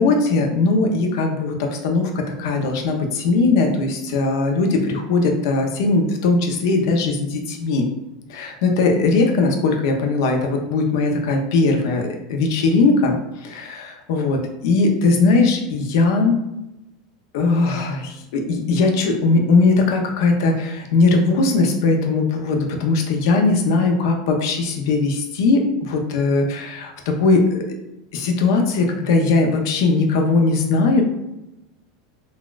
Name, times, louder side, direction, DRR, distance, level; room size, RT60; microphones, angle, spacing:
voice 1, 0.0-7.9 8.3-16.4 17.3-27.6 28.1-31.0, left 3 dB, 60° left, 3 dB, 0.6 m, -19 dB
4.0 x 2.2 x 2.3 m, 0.92 s
supercardioid pair, 175°, 2 cm